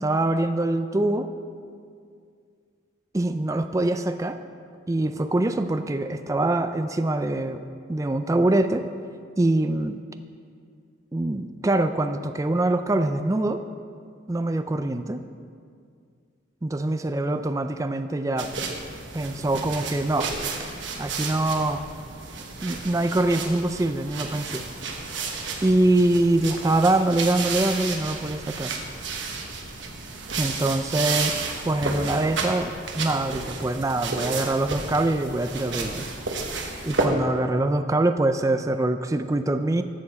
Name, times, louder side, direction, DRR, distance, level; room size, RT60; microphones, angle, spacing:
voice 1, 0.0-1.3 3.1-4.4 4.9-8.9 9.4-10.0 11.1-13.6 14.3-15.2 16.6-18.5 19.1-20.3 21.0-21.8 22.6-24.6 25.6-28.7 30.4-31.4 31.6-32.7 32.9-36.0 36.8-39.8, right 2 dB, 15° right, 9 dB, 0.3 m, -24 dB
sound 1, 18.4-37.1, right 4 dB, 70° right, 1.1 m, -32 dB
13.5 x 6.8 x 4.2 m, 2.2 s
head